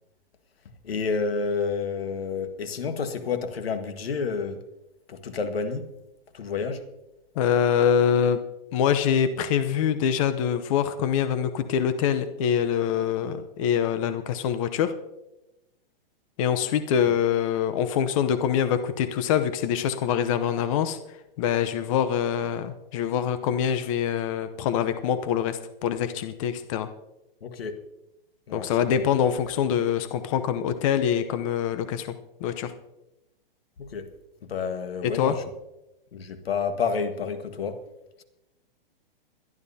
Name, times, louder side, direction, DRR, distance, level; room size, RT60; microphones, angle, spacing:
voice 1, 0.8-4.7 5.1-5.9 6.3-6.9 27.4-27.8 28.5-28.7 33.8-34.1 34.4-35.4 36.1-37.8, left 5 dB, 90° left, 1.7 m, -29 dB
voice 2, 7.3-8.4 8.7-14.9 16.4-26.9 28.5-32.1 32.4-32.7 35.0-35.4, left 8 dB, 35° left, 0.8 m, -24 dB
22.5 x 12.0 x 2.8 m
hypercardioid pair, 155°, 29 cm